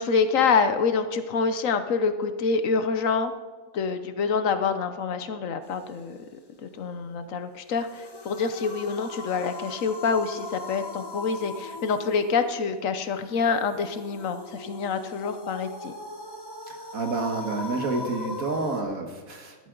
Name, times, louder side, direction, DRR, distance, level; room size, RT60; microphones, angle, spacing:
voice 1, 0.0-3.3 3.7-6.2 6.6-15.9, left 5 dB, 70° left, 10 dB, 1.2 m, -26 dB
sound 1, 7.7-18.8, left 2 dB, 20° left, 1.1 m, -40 dB
voice 2, 16.7-19.6, right 3 dB, 75° right, 4 dB, 2.0 m, -29 dB
15.0 x 11.5 x 3.8 m, 1.5 s
omnidirectional pair, 1.5 m